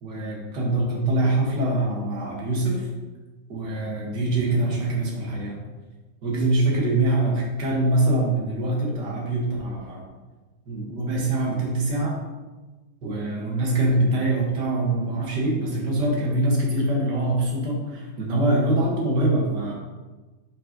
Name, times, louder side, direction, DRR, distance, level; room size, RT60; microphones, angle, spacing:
voice 1, 0.0-2.9 3.5-5.6 6.2-10.1 10.7-12.2 13.0-19.7, right 2 dB, 60° right, -2 dB, 1.9 m, -24 dB
5.5 x 5.2 x 3.8 m, 1.2 s
omnidirectional pair, 2.2 m